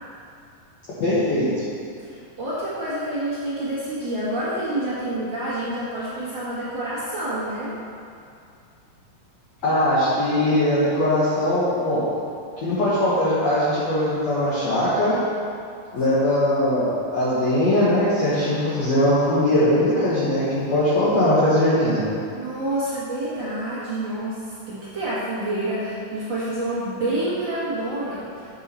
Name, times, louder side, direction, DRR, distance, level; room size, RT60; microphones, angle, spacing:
voice 1, 1.0-1.5 9.6-12.0 12.6-15.2 15.9-22.0, left 1 dB, 60° left, -10 dB, 2.0 m, -20 dB
voice 2, 2.0-7.7 22.3-28.3, right 1 dB, 70° right, -9 dB, 1.1 m, -28 dB
7.4 x 7.2 x 4.2 m, 2.5 s
omnidirectional pair, 4.4 m